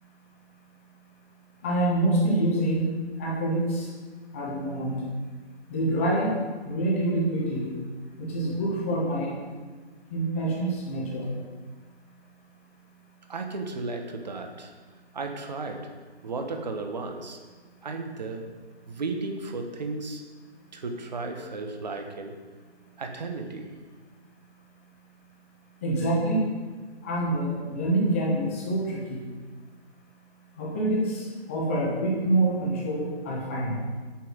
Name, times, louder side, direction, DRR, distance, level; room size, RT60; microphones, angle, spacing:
voice 1, 1.6-2.9 3.2-3.9 4.3-5.0 5.7-7.8 8.1-9.3 10.1-11.3 25.8-26.4 27.0-29.3 30.5-33.8, right 1 dB, 10° left, -3 dB, 1.2 m, -26 dB
voice 2, 13.3-14.7 15.1-15.9 16.2-17.4 17.8-18.5 18.8-20.2 20.7-22.3 23.0-23.8, right 3 dB, 40° right, 4 dB, 1.2 m, -34 dB
8.5 x 6.0 x 7.6 m, 1.4 s
figure-of-eight pair, 160°, 33 cm